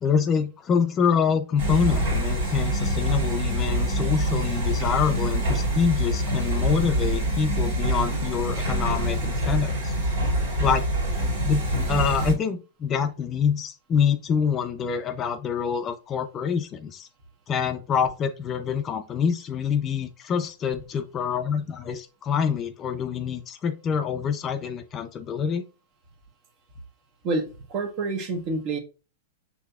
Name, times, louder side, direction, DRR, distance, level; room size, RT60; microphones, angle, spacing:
voice 1, 0.0-9.9 10.6-10.9 11.4-11.6 11.9-17.1 17.5-25.6, left 7 dB, 25° left, 8 dB, 0.4 m, -26 dB
sound 1, 1.6-12.3, right 1 dB, 75° right, 2.3 m, -25 dB
voice 2, 27.2-28.8, right 3 dB, 45° right, 6 dB, 1.1 m, -28 dB
6.4 x 2.8 x 2.3 m, 0.32 s
hypercardioid pair, 130°, 0 cm